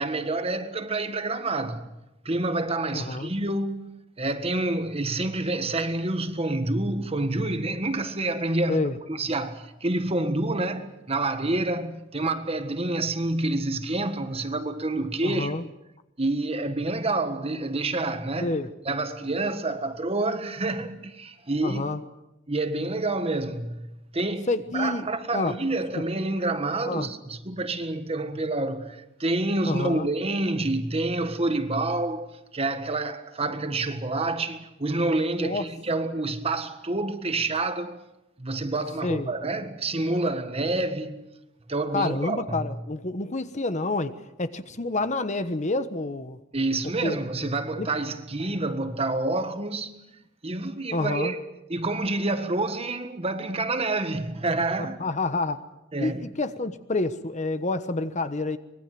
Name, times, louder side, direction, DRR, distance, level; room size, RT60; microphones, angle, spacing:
voice 1, 0.0-1.9 2.2-15.5 16.2-18.6 18.8-21.8 22.5-38.0 38.4-41.4 41.7-42.8 46.5-50.1 50.4-51.4 51.7-55.0 55.9-56.2, right 2 dB, 30° right, 1.6 m, -28 dB
voice 2, 2.9-3.3 8.7-9.0 15.2-15.7 18.4-18.7 21.6-22.0 24.5-25.6 26.9-27.1 29.6-30.1 35.4-35.7 39.0-39.3 41.9-46.4 47.0-47.2 47.4-47.5 47.8-47.9 50.9-51.3 54.8-55.6 56.0-58.6, left 2 dB, 35° left, 1.2 m, -28 dB
25.0 x 21.5 x 7.7 m
head